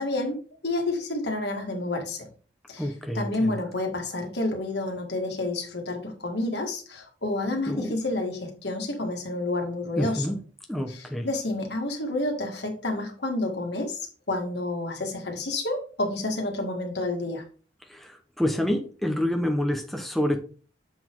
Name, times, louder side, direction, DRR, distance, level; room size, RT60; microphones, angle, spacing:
voice 1, 0.0-2.3 2.7-10.3 10.9-17.4, left 2 dB, 65° left, 1.7 m, -29 dB
voice 2, 2.8-3.5 7.7-7.9 10.0-10.4 10.7-11.3 17.9-20.4, left 1 dB, ahead, 0.8 m, -27 dB
7.1 x 4.0 x 4.5 m
head